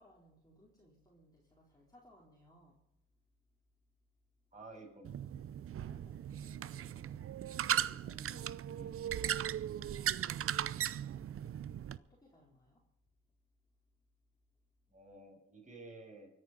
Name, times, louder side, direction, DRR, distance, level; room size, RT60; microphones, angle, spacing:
voice 1, 0.0-2.8 5.7-7.4 7.8-12.9, equal, 10° left, -4 dB, 4.5 m, -64 dB
voice 2, 4.5-5.2 8.7-8.9 14.9-16.3, right 2 dB, 25° right, 0 dB, 7.0 m, -52 dB
sound 1, 5.0-12.0, right 10 dB, 45° right, 0.6 m, -37 dB
24.0 x 9.6 x 5.3 m, 0.82 s
cardioid pair, 90°, 30 cm